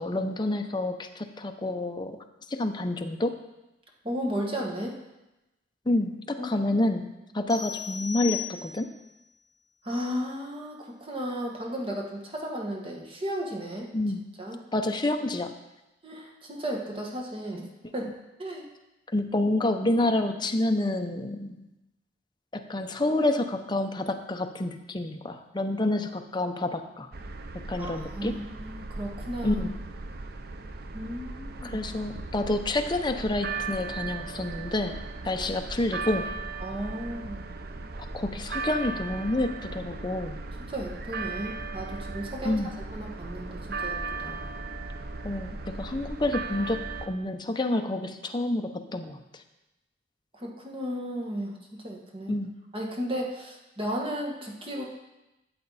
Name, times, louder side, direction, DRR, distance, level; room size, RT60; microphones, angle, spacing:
voice 1, 0.0-2.2 2.5-3.4 5.9-8.9 13.9-14.2 14.7-15.6 19.1-21.6 22.5-27.1 27.7-28.4 29.4-29.7 31.6-36.3 38.1-40.4 42.4-42.7 45.2-49.2 52.3-52.5, left 2 dB, 25° left, 5 dB, 0.7 m, -28 dB
voice 2, 4.0-5.0 6.4-6.5 9.8-13.9 14.4-14.6 16.0-17.7 17.9-18.0 18.4-18.7 27.8-29.6 30.9-31.8 36.6-37.5 40.7-44.4 50.3-52.4 52.7-54.8, equal, 30° right, 0 dB, 1.6 m, -34 dB
sound 1, 7.5-9.0, left 9 dB, 5° right, 1.9 m, -36 dB
sound 2, 27.1-47.1, right 3 dB, 55° right, 0.6 m, -37 dB
13.0 x 7.7 x 4.1 m, 0.98 s
head